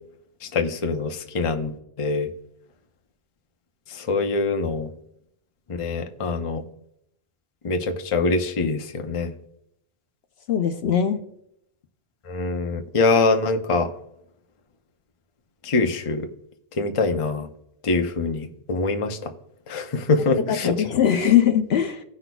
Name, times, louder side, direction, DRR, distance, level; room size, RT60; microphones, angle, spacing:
voice 1, 0.5-1.7 2.0-2.3 4.0-4.9 5.7-6.6 7.6-9.3 12.3-13.9 15.6-16.3 16.8-17.5 17.8-19.3 19.7-20.7, left 3 dB, 35° left, 6 dB, 0.6 m, -24 dB
voice 2, 10.5-11.2 20.5-22.0, left 9 dB, 65° left, 7 dB, 0.9 m, -20 dB
17.0 x 6.0 x 2.3 m, 0.76 s
omnidirectional pair, 1.2 m